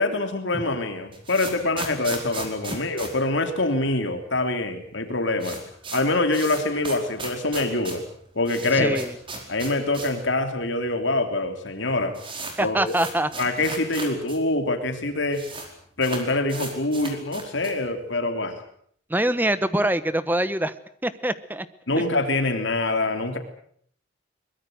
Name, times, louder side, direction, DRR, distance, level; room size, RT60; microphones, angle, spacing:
voice 1, 0.0-5.6 5.9-8.0 8.3-9.0 9.5-12.2 12.6-12.9 13.4-15.4 16.0-18.6 21.9-23.4, left 2 dB, 65° left, 6 dB, 3.2 m, -25 dB
sound 1, 0.9-4.1 4.4-4.5 4.7-4.8 5.1-10.3 10.6-10.7 11.4-11.5 11.7-14.4 14.6-14.7 14.9-15.7 16.0-17.9, right 3 dB, 25° right, 4.8 m, -37 dB
voice 2, 8.8-9.1 12.6-13.3 19.1-20.7 21.0-21.7, right 1 dB, 10° right, 14 dB, 1.1 m, -24 dB
23.0 x 21.5 x 8.0 m, 0.63 s
head